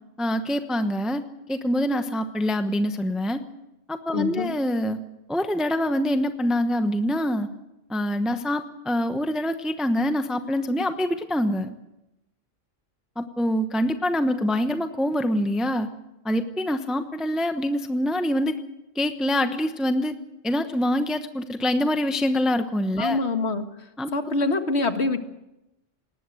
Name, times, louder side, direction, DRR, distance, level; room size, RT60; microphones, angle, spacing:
voice 1, 0.2-1.2 1.5-3.4 3.9-5.0 5.3-7.5 7.9-11.7 13.2-15.9 16.2-18.6 18.9-20.2 20.4-23.2 24.0-24.1, left 1 dB, ahead, 8 dB, 0.9 m, -25 dB
voice 2, 4.1-4.6 23.0-23.7 24.1-25.2, left 3 dB, 60° left, 7 dB, 1.8 m, -25 dB
19.5 x 19.0 x 7.9 m, 0.93 s
omnidirectional pair, 1.3 m